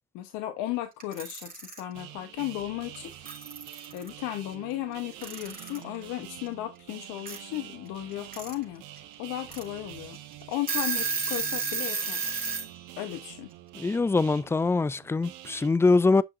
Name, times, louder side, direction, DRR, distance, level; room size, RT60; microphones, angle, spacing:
voice 1, 0.1-3.1 3.9-10.2 10.5-12.3 13.0-13.5, left 14 dB, 70° left, 1.1 m, -35 dB
Alarm / Clock, 1.0-1.8 2.9-3.0 3.3-4.1 5.2-5.8 7.3-7.4 8.1-8.5 9.0-9.1 9.5-9.6 10.2-10.3 10.5-12.7, right 4 dB, 25° right, 3.4 m, -31 dB
sound 1, 1.9-15.7, right 12 dB, 75° right, 1.5 m, -46 dB
voice 2, 13.7-16.2, left 3 dB, 10° left, 0.4 m, -23 dB
8.9 x 5.9 x 2.6 m
supercardioid pair, 75°, 32 cm